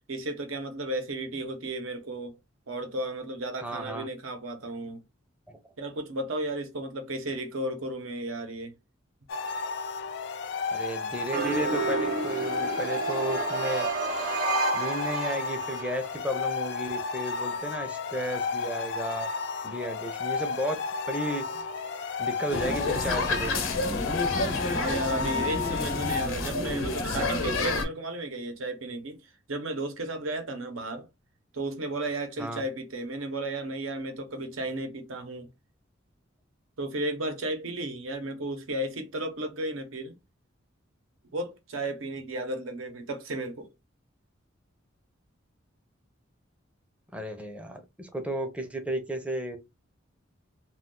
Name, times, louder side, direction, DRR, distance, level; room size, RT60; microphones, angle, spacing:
voice 1, 0.1-2.4 2.7-5.0 5.8-8.7 24.7-29.2 29.5-31.1 31.5-35.5 36.8-40.2 41.3-43.7, right 1 dB, 90° right, 0.7 m, -34 dB
voice 2, 3.6-4.1 5.5-5.6 10.7-13.9 14.7-19.3 19.6-20.8 21.1-21.4 22.2-23.5 32.4-32.6 47.1-49.6, right 1 dB, 5° right, 0.4 m, -33 dB
sound 1, 9.3-26.3, left 5 dB, 55° left, 0.3 m, -33 dB
sound 2, 11.3-16.0, right 3 dB, 45° right, 0.7 m, -30 dB
sound 3, 22.5-27.8, left 3 dB, 90° left, 0.9 m, -29 dB
2.3 x 2.2 x 3.6 m
head